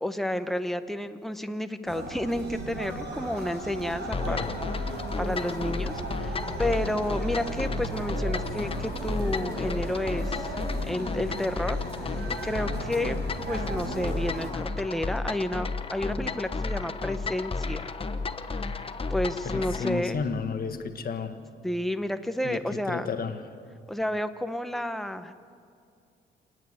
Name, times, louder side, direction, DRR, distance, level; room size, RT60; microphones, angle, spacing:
voice 1, 0.0-4.5 4.8-10.5 10.9-13.2 13.5-17.9 18.5-18.8 19.1-20.2 21.6-23.1 23.9-25.4, left 1 dB, ahead, 8 dB, 1.0 m, -31 dB
sound 1, 1.9-14.5, right 2 dB, 60° right, 5.3 m, -36 dB
sound 2, 4.1-20.0, left 4 dB, 30° left, 1.0 m, -33 dB
voice 2, 19.4-21.4 22.4-23.4, left 5 dB, 45° left, 7 dB, 1.6 m, -32 dB
28.5 x 9.5 x 9.7 m, 2.4 s
cardioid pair, 90°, 20 cm